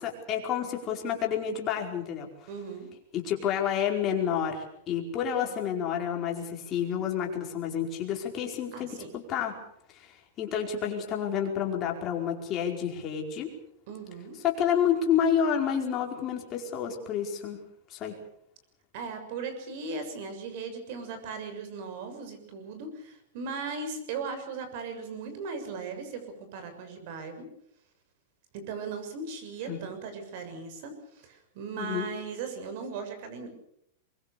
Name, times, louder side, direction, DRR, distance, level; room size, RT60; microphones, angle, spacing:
voice 1, 0.0-2.3 3.1-9.6 9.9-13.5 14.4-17.6 17.9-18.2 29.7-29.8 31.8-32.1, left 8 dB, 25° left, 1 dB, 4.8 m, -29 dB
voice 2, 2.5-2.9 8.7-9.1 13.9-14.4 18.9-27.4 28.5-33.5, right 4 dB, 50° right, 8 dB, 6.8 m, -38 dB
23.5 x 22.5 x 6.9 m, 0.73 s
supercardioid pair, 160°, 0 cm